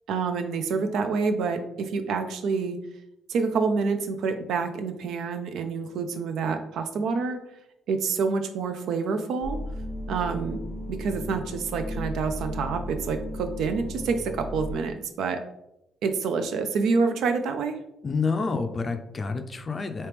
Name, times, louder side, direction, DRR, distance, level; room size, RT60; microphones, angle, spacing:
voice 1, 0.1-2.8 3.3-7.4 7.9-9.6 10.1-10.6 10.9-15.4 16.0-17.8, right 4 dB, 80° right, 7 dB, 0.4 m, -27 dB
sound 1, 9.4-14.7, left 1 dB, 30° right, 1.2 m, -35 dB
voice 2, 18.0-20.1, left 4 dB, 35° left, 7 dB, 0.4 m, -28 dB
3.1 x 2.9 x 3.3 m, 0.83 s
cardioid pair, 90°, 0 cm